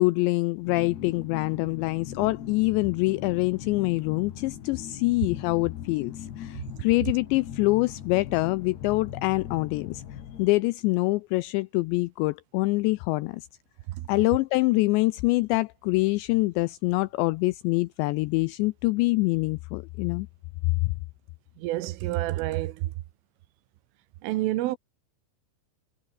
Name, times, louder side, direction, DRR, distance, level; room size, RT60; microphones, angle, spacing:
voice 1, 0.0-13.5 14.1-20.3 20.6-20.9, left 22 dB, 90° left, 2.5 m, -25 dB
sound 1, 0.6-10.5, left 9 dB, 60° left, 4.3 m, -40 dB
voice 2, 21.6-22.9 24.2-24.8, right 16 dB, 90° right, 3.7 m, -28 dB
omnidirectional pair, 5.6 m